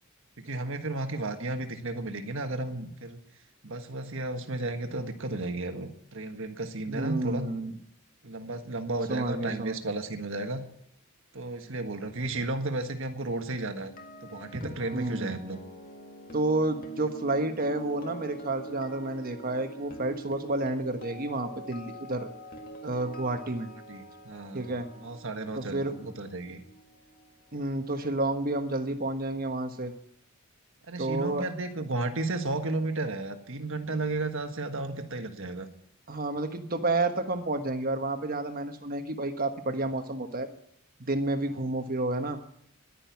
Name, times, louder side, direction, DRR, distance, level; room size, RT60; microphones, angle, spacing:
voice 1, 0.4-3.2 3.6-7.5 8.2-10.6 11.3-13.9 14.2-15.6 23.9-26.6 30.9-35.7 41.5-41.6, right 2 dB, 60° right, 6 dB, 1.5 m, -33 dB
voice 2, 6.9-7.7 9.1-9.8 14.6-15.4 16.3-22.3 22.8-23.7 24.5-24.9 25.5-26.1 27.5-29.9 31.0-31.5 36.1-40.5 41.1-42.4, right 2 dB, 40° right, 7 dB, 1.4 m, -30 dB
sound 1, 13.7-27.8 28.1-28.4, right 1 dB, 40° left, 2.0 m, -45 dB
11.5 x 10.5 x 8.5 m, 0.74 s
head